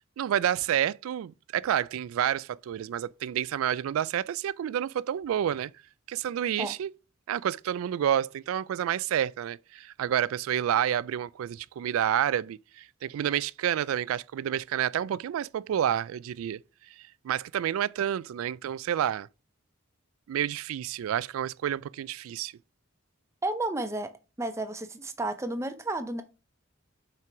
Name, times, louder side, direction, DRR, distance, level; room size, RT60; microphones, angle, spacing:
voice 1, 0.2-5.7 6.1-6.9 7.3-16.6 17.2-19.3 20.3-22.5, right 10 dB, 90° right, 0.3 m, -29 dB
voice 2, 23.4-24.1 24.4-26.2, right 2 dB, 15° right, 0.6 m, -32 dB
5.9 x 4.6 x 4.7 m
head